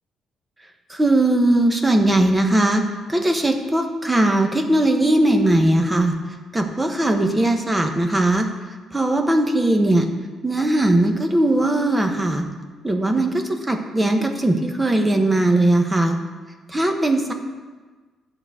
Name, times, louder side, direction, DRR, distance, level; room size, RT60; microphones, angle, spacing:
voice 1, 0.9-2.8 3.1-6.1 6.5-8.5 8.9-10.1 10.4-12.4 12.8-16.2 16.7-17.3, right 1 dB, 15° right, 5 dB, 1.0 m, -19 dB
10.5 x 3.9 x 7.6 m, 1.4 s
cardioid pair, 90°, 0 cm